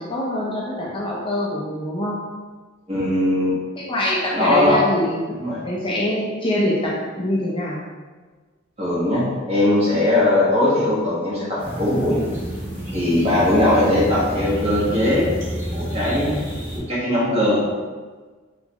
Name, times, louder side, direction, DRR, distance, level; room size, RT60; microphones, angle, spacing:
voice 1, 0.0-2.2 3.8-7.8, left 1 dB, 25° left, -4 dB, 0.5 m, -24 dB
voice 2, 2.9-3.5 4.3-4.8 5.4-5.6 8.8-12.2 12.9-15.3 15.7-16.3 16.7-17.6, left 1 dB, 30° right, -8 dB, 1.4 m, -19 dB
sound 1, 11.6-16.8, equal, 10° right, 1.4 m, -30 dB
3.6 x 3.4 x 3.0 m, 1.4 s
head